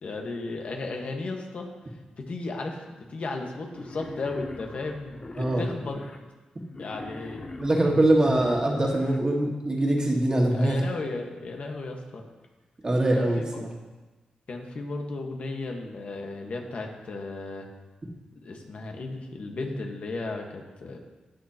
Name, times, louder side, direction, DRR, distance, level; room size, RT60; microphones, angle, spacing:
voice 1, 0.0-1.7 2.2-6.0 6.8-7.5 10.5-12.2 13.1-13.4 14.5-17.7 18.4-21.0, left 3 dB, 55° left, 2 dB, 1.4 m, -35 dB
Wild animals, 3.7-6.2 6.7-9.2, left 2 dB, 30° left, 0.7 m, -42 dB
voice 2, 7.6-10.8 12.8-13.7, right 1 dB, 30° right, -1 dB, 1.8 m, -23 dB
18.0 x 6.6 x 2.9 m, 1.2 s
wide cardioid pair, 105°, 3 cm